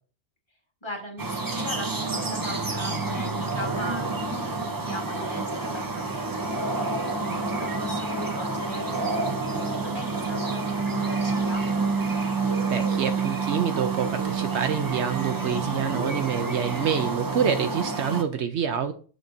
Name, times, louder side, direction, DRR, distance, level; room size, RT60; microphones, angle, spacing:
voice 1, 0.8-11.6 16.9-17.2, equal, 20° left, 0 dB, 1.5 m, -39 dB
sound 1, 1.2-18.2, right 3 dB, 25° right, 0.5 m, -28 dB
voice 2, 12.7-18.9, right 7 dB, 70° right, 8 dB, 0.8 m, -27 dB
6.5 x 6.1 x 2.7 m, 0.39 s
omnidirectional pair, 1.3 m